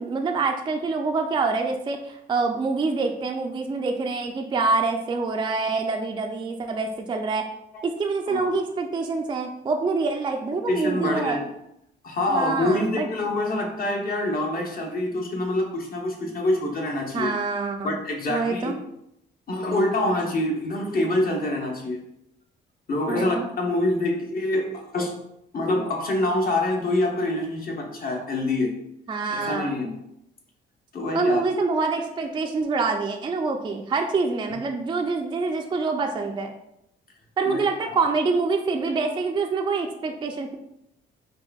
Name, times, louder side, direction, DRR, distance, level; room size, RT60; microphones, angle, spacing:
voice 1, 0.0-7.4 7.8-11.4 12.3-13.1 17.1-18.0 18.3-18.8 23.1-23.5 29.1-29.8 31.1-36.5 37.4-40.6, right 4 dB, 25° right, 3 dB, 0.3 m, -26 dB
voice 2, 10.7-11.5 12.0-17.3 17.8-18.7 19.5-22.0 22.9-25.1 25.5-28.7 29.4-29.9 30.9-31.4 37.4-38.0, left 1 dB, 45° left, 1 dB, 0.9 m, -26 dB
4.4 x 2.6 x 2.3 m, 0.79 s
cardioid pair, 90°, 20 cm